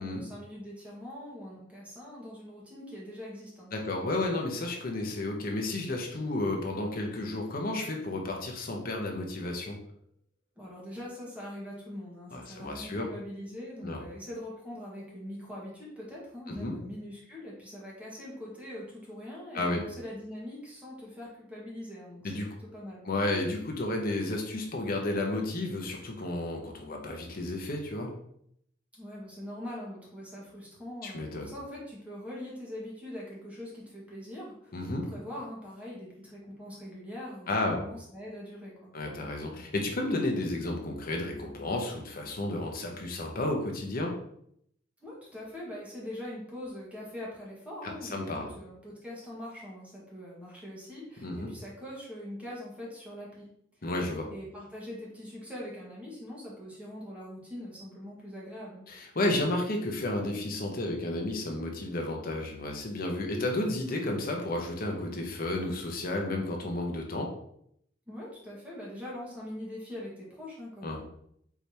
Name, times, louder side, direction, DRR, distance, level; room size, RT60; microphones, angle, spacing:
voice 1, 0.0-3.7 10.6-22.4 22.7-23.0 28.9-38.9 45.0-53.5 54.3-58.8 68.1-71.0, left 1 dB, 5° right, -6 dB, 1.5 m, -42 dB
voice 2, 3.7-9.8 12.3-13.1 13.8-14.0 16.5-16.7 19.5-19.8 22.2-22.5 23.0-28.1 31.0-31.5 34.7-35.0 37.5-37.8 38.9-44.1 47.8-48.5 51.2-51.5 53.8-54.3 58.9-67.3 70.8-71.0, left 2 dB, 50° left, 2 dB, 0.8 m, -32 dB
4.7 x 3.4 x 2.8 m, 0.70 s
head